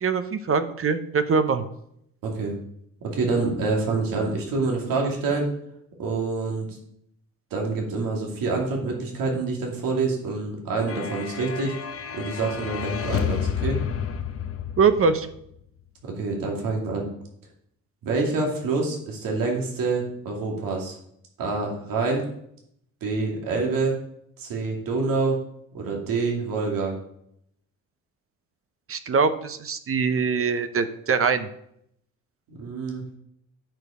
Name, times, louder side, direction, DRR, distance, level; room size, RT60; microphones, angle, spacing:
voice 1, 0.0-1.7 14.8-15.3 28.9-31.5, right 5 dB, 40° right, 10 dB, 0.9 m, -23 dB
voice 2, 2.2-2.5 3.1-5.5 6.0-6.7 7.5-11.8 12.1-13.8 16.0-17.1 18.0-20.9 21.4-22.2 23.0-24.0 24.4-25.4 25.7-26.9 32.5-33.1, right 3 dB, 80° right, 0 dB, 2.4 m, -26 dB
sound 1, 10.9-15.5, left 8 dB, 45° left, 0.9 m, -30 dB
10.5 x 5.2 x 5.0 m, 0.72 s
cardioid pair, 90°, 33 cm